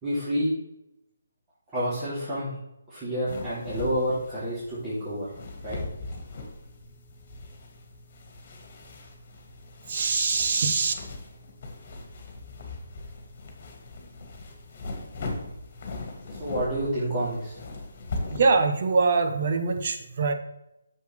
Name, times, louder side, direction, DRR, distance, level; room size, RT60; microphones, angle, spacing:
voice 1, 0.0-0.5 1.7-2.6 2.9-5.3 5.6-5.8 16.3-17.6, equal, 15° right, -12 dB, 2.9 m, -29 dB
sound 1, 3.3-18.7, left 2 dB, 40° left, 2.0 m, -40 dB
voice 2, 9.9-10.9 18.3-20.3, right 4 dB, 45° right, 6 dB, 1.2 m, -23 dB
8.2 x 6.9 x 3.2 m, 0.86 s
figure-of-eight pair, 145°, 0 cm